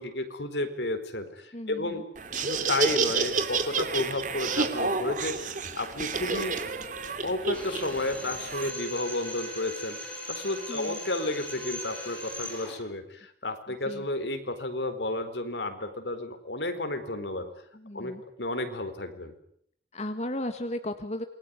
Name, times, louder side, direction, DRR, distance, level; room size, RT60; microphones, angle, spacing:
voice 1, 0.0-2.0 2.3-6.6 7.2-17.5 17.9-18.1 18.4-19.3, left 2 dB, 75° left, 8 dB, 4.5 m, -32 dB
voice 2, 1.5-2.0 10.7-11.0 13.7-14.1 17.7-18.2 19.9-21.2, left 1 dB, 40° left, 8 dB, 1.7 m, -35 dB
Laughter, 2.2-8.7, right 4 dB, 45° right, 2.6 m, -30 dB
Drill, 7.5-12.8, left 1 dB, 10° left, 7.9 m, -39 dB
28.0 x 22.0 x 9.7 m, 0.68 s
head